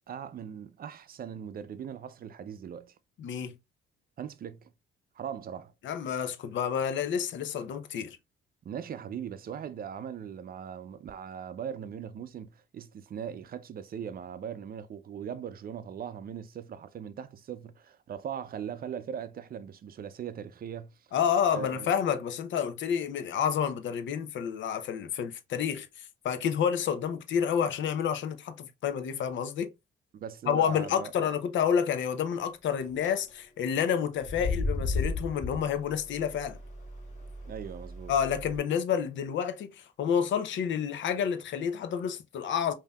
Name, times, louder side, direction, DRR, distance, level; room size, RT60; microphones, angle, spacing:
voice 1, 0.1-2.9 4.2-4.7 5.2-5.7 8.7-20.9 21.5-21.9 30.1-31.1 37.5-38.1, right 8 dB, 50° right, 0.5 m, -39 dB
voice 2, 3.2-3.5 5.8-8.2 21.1-29.7 30.5-36.6 38.1-42.7, left 8 dB, 70° left, 0.7 m, -29 dB
sound 1, 32.7-33.1 34.2-38.6, left 3 dB, 35° left, 1.8 m, -35 dB
5.3 x 2.8 x 2.3 m
cardioid pair, 90°, 20 cm